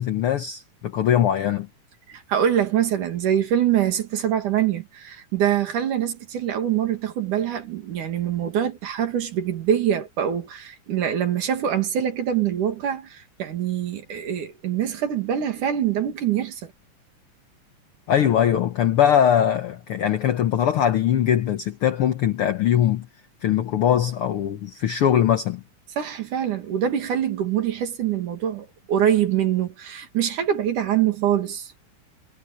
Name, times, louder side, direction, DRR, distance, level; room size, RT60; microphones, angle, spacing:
voice 1, 0.0-1.7 18.1-23.1 23.4-25.6, left 10 dB, 70° left, 1.3 m, -21 dB
voice 2, 2.1-16.7 26.0-31.7, right 10 dB, 70° right, 3.7 m, -24 dB
omnidirectional pair, 3.7 m